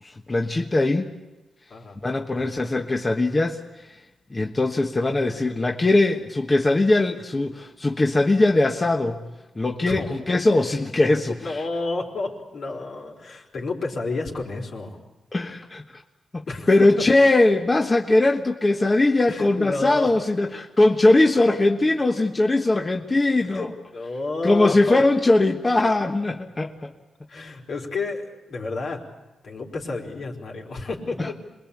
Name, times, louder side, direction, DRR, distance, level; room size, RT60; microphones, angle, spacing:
voice 1, 0.0-1.1 2.0-3.6 4.3-9.3 9.6-11.6 15.3-15.8 16.3-23.7 24.4-26.9 31.2-31.3, left 2 dB, 25° left, 3 dB, 1.3 m, -20 dB
voice 2, 1.7-2.5 9.8-10.1 11.3-15.0 16.5-16.9 19.3-20.1 23.5-25.0 27.3-29.0 29.4-31.3, left 3 dB, 65° left, 0 dB, 4.4 m, -30 dB
27.0 x 21.5 x 8.6 m, 1.1 s
cardioid pair, 85°, 0 cm